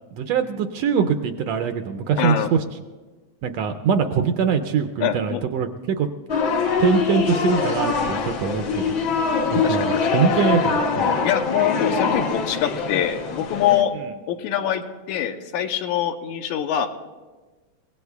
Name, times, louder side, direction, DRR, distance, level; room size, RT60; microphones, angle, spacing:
voice 1, 0.1-2.6 3.4-6.1 6.8-8.9 9.5-11.1, right 6 dB, 75° right, 7 dB, 1.7 m, -23 dB
voice 2, 2.2-2.5 5.0-5.4 9.6-10.1 11.2-13.9 14.3-16.9, left 10 dB, 80° left, 6 dB, 2.2 m, -24 dB
sound 1, 6.3-13.8, left 5 dB, 60° left, 1.3 m, -23 dB
29.5 x 17.0 x 2.3 m, 1.3 s
omnidirectional pair, 3.4 m